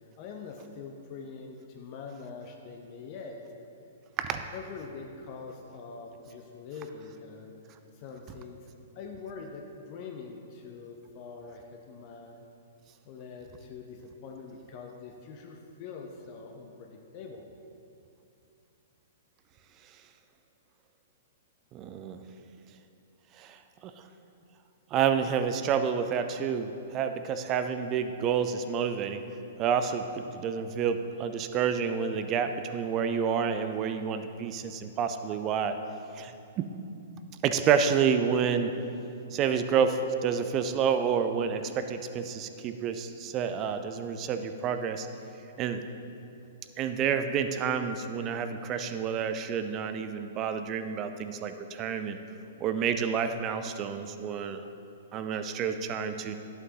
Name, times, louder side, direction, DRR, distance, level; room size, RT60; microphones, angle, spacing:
voice 1, 0.2-3.4 4.5-7.6 7.9-8.7 8.9-12.5 13.0-17.5, left 5 dB, 40° left, 1 dB, 0.7 m, -44 dB
voice 2, 4.2-4.5 21.7-22.2 23.4-23.9 24.9-29.2 29.6-35.8 36.1-36.7 37.4-38.7 39.3-45.1 45.6-45.8 46.8-52.2 52.6-54.6 55.1-56.3, right 7 dB, 30° right, 9 dB, 0.5 m, -29 dB
11.5 x 8.0 x 2.8 m, 2.7 s
figure-of-eight pair, 110°, 0 cm